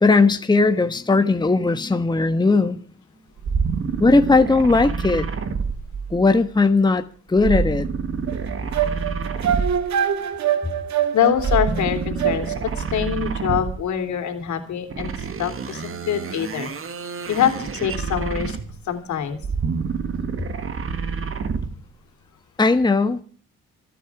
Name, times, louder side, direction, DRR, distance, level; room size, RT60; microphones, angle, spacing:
voice 1, 0.0-2.8 4.0-5.3 6.1-7.0 7.3-7.9 22.6-23.2, left 3 dB, 15° left, 8 dB, 1.2 m, -18 dB
sound 1, 3.4-6.4 7.4-10.1 11.3-13.9 14.9-18.9 19.3-21.8, right 5 dB, 45° right, 2.0 m, -27 dB
sound 2, 8.3-12.8, right 9 dB, 65° right, 1.8 m, -24 dB
voice 2, 11.1-16.7 17.3-18.6 18.9-19.4, left 8 dB, 70° left, 6 dB, 3.2 m, -24 dB
27.5 x 9.3 x 4.8 m, 0.41 s
cardioid pair, 90°, 30 cm